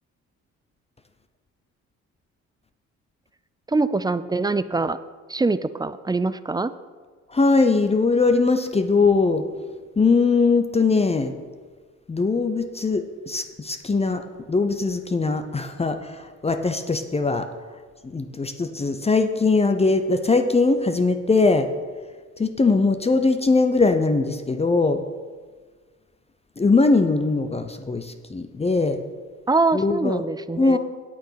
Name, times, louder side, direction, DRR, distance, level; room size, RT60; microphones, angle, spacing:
voice 1, 3.7-5.0 5.3-6.7 29.5-30.8, right 3 dB, 15° right, 15 dB, 0.4 m, -23 dB
voice 2, 7.3-9.4 10.0-11.3 12.1-17.5 18.0-21.7 22.4-25.0 26.6-29.0 29.7-30.3 30.6-30.8, left 3 dB, 20° left, 7 dB, 0.7 m, -21 dB
9.0 x 8.6 x 5.7 m, 1.5 s
cardioid pair, 90°, 30 cm